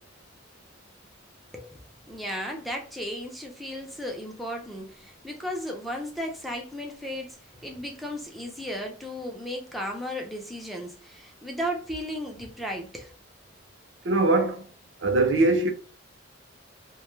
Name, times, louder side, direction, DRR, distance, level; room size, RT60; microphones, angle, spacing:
voice 1, 2.1-13.1, equal, ahead, 0.4 m, -35 dB
voice 2, 14.0-14.7 15.0-15.7, right 2 dB, 70° right, 0.5 m, -21 dB
2.2 x 2.0 x 3.0 m
head